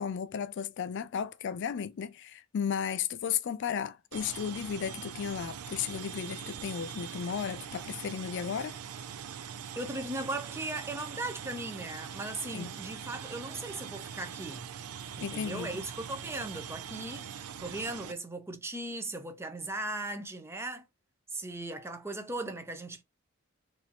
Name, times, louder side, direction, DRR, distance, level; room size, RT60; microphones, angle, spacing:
voice 1, 0.0-8.8 12.5-12.7 15.2-15.7, left 7 dB, 55° left, 0.3 m, -34 dB
sound 1, 4.1-18.1, right 8 dB, 85° right, 0.5 m, -42 dB
voice 2, 9.8-14.7 15.2-20.9 21.3-23.0, right 2 dB, 10° right, 0.6 m, -38 dB
4.1 x 2.6 x 2.9 m
head